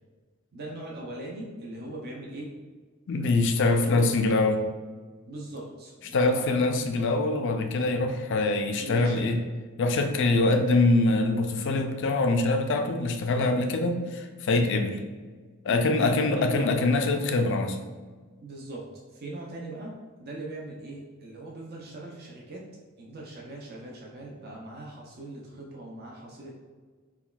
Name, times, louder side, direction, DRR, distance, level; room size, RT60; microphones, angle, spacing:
voice 1, 0.5-2.5 3.6-4.2 5.3-6.6 8.8-9.3 15.7-16.7 18.4-22.6 23.0-26.5, right 1 dB, 45° right, -2 dB, 0.6 m, -40 dB
voice 2, 3.1-4.6 6.1-9.4 9.8-15.0 15.6-17.8, left 2 dB, 60° left, 5 dB, 0.4 m, -24 dB
5.7 x 2.3 x 2.3 m, 1.4 s
head